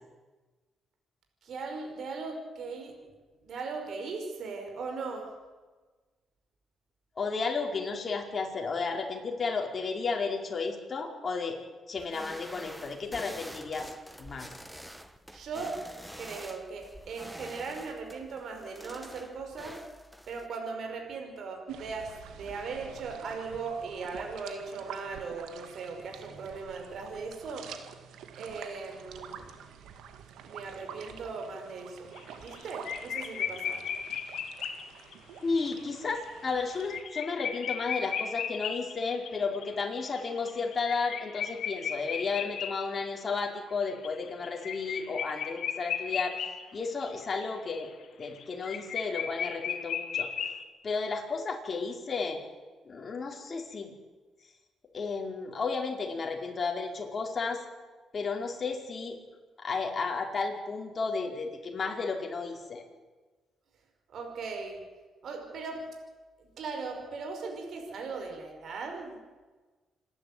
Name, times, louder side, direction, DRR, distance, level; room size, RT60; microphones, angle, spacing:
voice 1, 1.4-2.9 3.4-5.3 15.3-15.8 16.2-19.8 20.3-27.7 28.4-29.4 30.4-33.8 64.1-64.8 65.2-65.8 66.4-69.2, right 4 dB, 60° right, 3 dB, 5.1 m, -38 dB
voice 2, 7.2-11.6 11.9-13.9 14.2-14.5 35.4-46.3 46.7-47.9 48.2-50.3 50.8-52.4 52.8-53.9 54.9-57.6 58.1-59.2 59.6-62.8, left 4 dB, 40° left, 2 dB, 4.7 m, -33 dB
sound 1, 12.0-20.5, equal, 5° right, 1.6 m, -47 dB
sound 2, 21.7-37.0, right 8 dB, 85° right, 2.1 m, -48 dB
sound 3, 32.2-32.6 32.8-35.1 35.8-35.9 36.1-36.2 36.6-43.4 43.8-46.7 47.0-47.1 47.4-50.6, left 8 dB, 65° left, 2.1 m, -35 dB
27.5 x 11.5 x 9.3 m, 1.3 s
cardioid pair, 90°, 0 cm